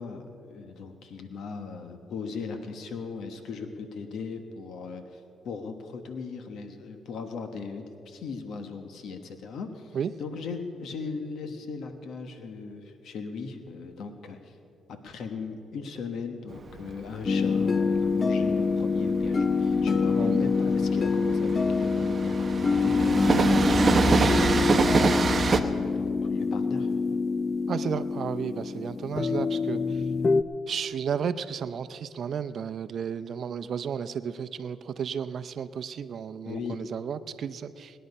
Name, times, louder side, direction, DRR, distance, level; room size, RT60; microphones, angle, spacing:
voice 1, 0.0-14.6 14.9-23.4 23.7-26.9 36.4-36.8, left 5 dB, 70° left, 7 dB, 1.2 m, -38 dB
Train, 16.5-25.6, right 4 dB, 35° right, 0.9 m, -26 dB
sound 1, 17.3-30.4, left 4 dB, 35° left, 0.5 m, -26 dB
voice 2, 20.1-20.5 27.7-30.0 30.7-38.0, right 7 dB, 60° right, 13 dB, 0.6 m, -33 dB
20.0 x 10.0 x 5.4 m, 2.7 s
cardioid pair, 90°, 0 cm